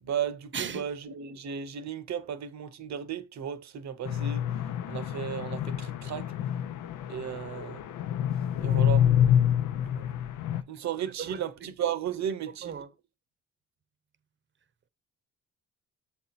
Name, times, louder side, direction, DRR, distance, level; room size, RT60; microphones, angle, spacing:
voice 1, 0.0-4.4 4.9-6.3 7.1-7.8 8.6-9.1 10.7-12.8, right 9 dB, 65° right, 1.0 m, -34 dB
voice 2, 0.5-1.1 8.7-8.8 9.7-10.1 10.5-10.6 11.2-11.7 12.6-12.9, right 7 dB, 40° right, 0.8 m, -39 dB
sound 1, 4.0-10.6, left 10 dB, 85° left, 0.7 m, -27 dB
7.2 x 4.4 x 4.1 m
cardioid pair, 90°, 30 cm